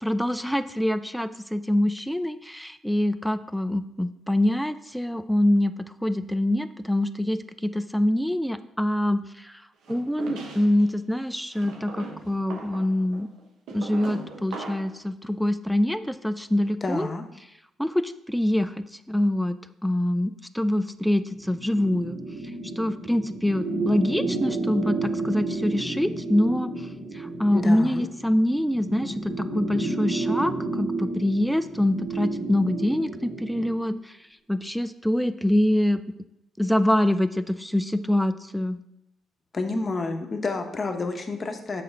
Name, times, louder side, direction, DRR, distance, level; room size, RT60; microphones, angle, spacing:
voice 1, 0.0-5.7 6.0-9.6 9.9-13.3 13.7-17.1 17.8-19.6 19.8-22.2 22.8-26.7 27.1-34.1 34.5-36.0 36.6-38.8, left 1 dB, ahead, 12 dB, 0.3 m, -25 dB
sound 1, 9.9-10.9 11.5-15.0, right 4 dB, 80° right, 1.1 m, -39 dB
voice 2, 16.8-17.2 27.5-28.1 39.5-41.8, left 3 dB, 35° left, 5 dB, 0.9 m, -29 dB
sound 2, 21.3-33.8, right 3 dB, 40° right, 1.9 m, -31 dB
6.8 x 4.3 x 5.1 m, 0.84 s
cardioid pair, 100°, 0 cm